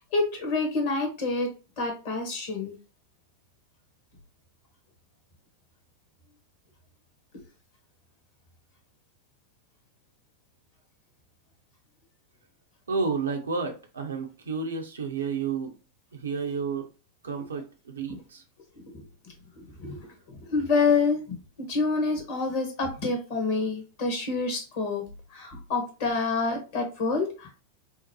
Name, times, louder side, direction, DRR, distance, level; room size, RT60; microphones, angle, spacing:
voice 1, 0.0-1.5 1.8-2.7 18.1-18.2 18.9-19.1 19.6-20.0 20.3-25.0 25.3-27.6, left 4 dB, 50° left, 3 dB, 1.6 m, -27 dB
voice 2, 12.9-15.8 16.1-16.9 17.2-18.4, right 5 dB, 70° right, 3 dB, 0.8 m, -31 dB
5.6 x 2.1 x 3.0 m, 0.33 s
figure-of-eight pair, 90°, 0 cm